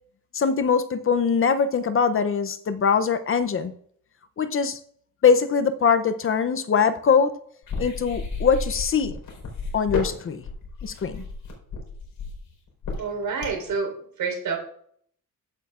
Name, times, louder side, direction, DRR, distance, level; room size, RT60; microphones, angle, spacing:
voice 1, 0.3-3.7 4.4-4.8 5.2-7.3 7.8-9.1 9.7-10.4 10.8-11.2, left 6 dB, 40° left, 11 dB, 0.6 m, -22 dB
sound 1, 7.6-13.7, left 4 dB, 70° left, 4.2 m, -32 dB
voice 2, 13.0-14.6, right 5 dB, 75° right, 1 dB, 4.0 m, -28 dB
14.5 x 9.0 x 2.4 m, 0.62 s
wide cardioid pair, 150°, 34 cm